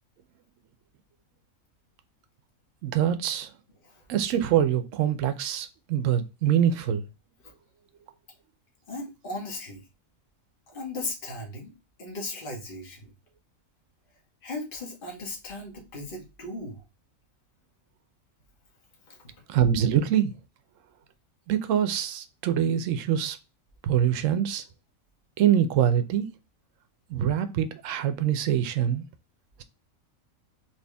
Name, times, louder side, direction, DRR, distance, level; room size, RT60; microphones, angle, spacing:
voice 1, 2.8-3.5 4.1-7.0 19.5-20.3 21.5-23.4 23.8-24.6 25.4-26.3 27.1-29.0, right 9 dB, 70° right, 1.0 m, -24 dB
voice 2, 8.9-9.8 10.7-11.7 12.0-13.1 14.4-16.8 19.1-19.3, left 2 dB, 40° left, 1.4 m, -37 dB
4.2 x 2.9 x 3.3 m
omnidirectional pair, 1.4 m